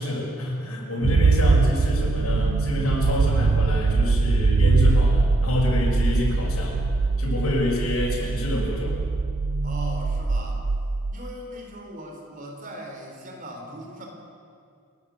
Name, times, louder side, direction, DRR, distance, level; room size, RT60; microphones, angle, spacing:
voice 1, 0.0-6.8 7.2-9.0, left 1 dB, 90° left, -3 dB, 6.2 m, -27 dB
sound 1, 1.0-11.1, right 3 dB, 90° right, 0.7 m, -22 dB
voice 2, 9.6-10.6 11.1-14.1, equal, 40° right, 1 dB, 4.0 m, -39 dB
29.0 x 11.5 x 8.3 m, 2.3 s
head